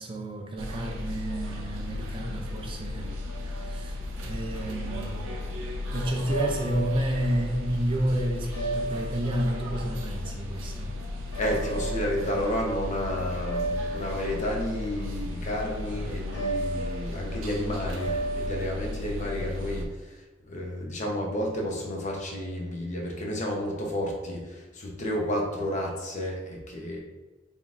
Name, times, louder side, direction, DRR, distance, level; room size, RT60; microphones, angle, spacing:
voice 1, 0.0-5.4 5.9-11.0, right 1 dB, 25° right, 2 dB, 0.4 m, -31 dB
sound 1, 0.6-19.8, left 2 dB, 85° right, 0.5 m, -35 dB
sound 2, 3.3-13.0 13.3-18.7, right 3 dB, 70° left, 1.1 m, -35 dB
voice 2, 11.4-27.0, equal, 40° left, -1 dB, 0.8 m, -31 dB
3.8 x 3.6 x 2.4 m, 1.2 s
head